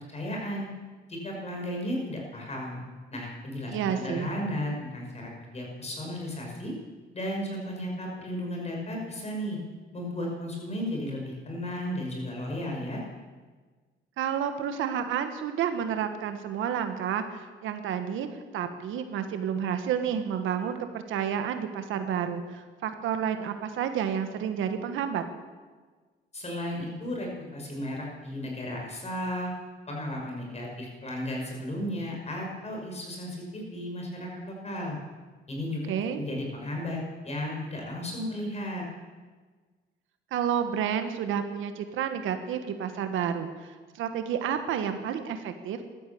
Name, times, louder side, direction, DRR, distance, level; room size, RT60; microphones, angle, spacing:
voice 1, 0.1-0.7 1.1-2.8 3.1-6.7 7.1-9.6 9.9-13.0 26.3-29.5 29.9-35.0 35.5-35.8 36.1-38.8, left 1 dB, 35° left, 0 dB, 5.7 m, -34 dB
voice 2, 3.7-4.3 14.2-18.3 18.5-25.2 35.9-36.2 40.3-45.9, right 8 dB, 85° right, 8 dB, 1.4 m, -30 dB
15.5 x 12.5 x 7.1 m, 1.4 s
cardioid pair, 90°, 20 cm